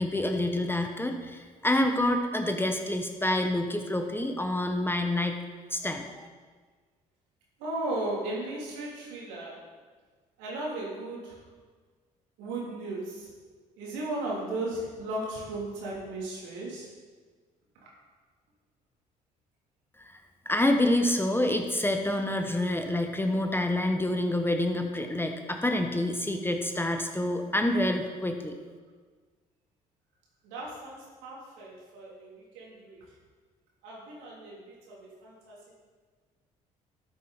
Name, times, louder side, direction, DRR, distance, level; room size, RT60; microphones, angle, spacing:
voice 1, 0.0-5.4 5.7-6.3 20.1-28.6, left 1 dB, 10° left, 5 dB, 1.2 m, -27 dB
voice 2, 7.6-9.6 10.4-11.4 12.4-13.3 13.8-16.9 17.8-17.9 30.4-33.0 33.8-35.6, right 2 dB, 70° right, -4 dB, 3.2 m, -36 dB
13.0 x 7.6 x 4.2 m, 1.5 s
hypercardioid pair, 50°, 19 cm